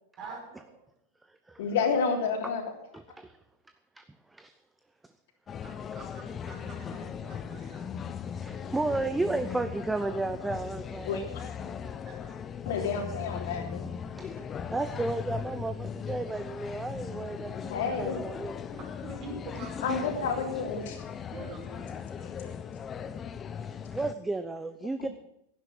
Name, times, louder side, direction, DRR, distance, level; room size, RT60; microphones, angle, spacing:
voice 1, 0.2-0.8 5.6-7.9 11.8-12.4 14.4-14.9 19.0-20.6 21.3-22.3, right 3 dB, 40° right, 1 dB, 5.3 m, -46 dB
voice 2, 1.6-2.6 11.0-11.2 12.6-13.8 17.7-18.2 19.8-21.0 22.2-22.3 23.0-23.1, left 5 dB, 65° left, 3 dB, 3.2 m, -30 dB
voice 3, 2.9-3.3 4.0-4.1 4.3-4.5 8.4-11.4 14.1-18.6 23.9-25.1, right 2 dB, 10° right, 10 dB, 0.8 m, -33 dB
sound 1, 5.5-24.1, left 7 dB, 25° left, 0.8 m, -38 dB
11.5 x 11.0 x 7.3 m, 0.78 s
hypercardioid pair, 100°, 0 cm